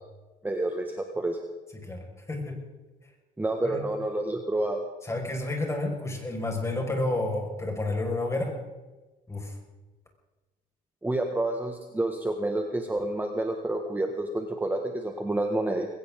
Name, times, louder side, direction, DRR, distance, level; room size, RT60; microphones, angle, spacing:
voice 1, 0.4-1.4 3.4-4.8 11.0-15.9, right 2 dB, 10° right, 3 dB, 1.7 m, -29 dB
voice 2, 1.7-2.6 3.6-3.8 5.0-8.5 9.3-9.6, left 2 dB, 15° left, 1 dB, 5.5 m, -30 dB
21.0 x 18.0 x 3.8 m, 1.2 s
cardioid pair, 110°, 17 cm